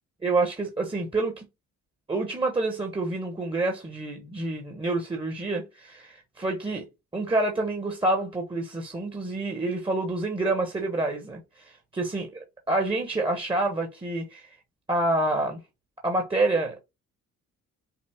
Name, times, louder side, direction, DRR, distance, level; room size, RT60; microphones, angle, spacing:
voice 1, 0.2-1.4 2.1-6.9 7.1-14.6 14.9-15.6 16.0-16.8, right 2 dB, 15° right, 1.2 m, -28 dB
5.9 x 2.0 x 3.5 m
cardioid pair, 90°, 30 cm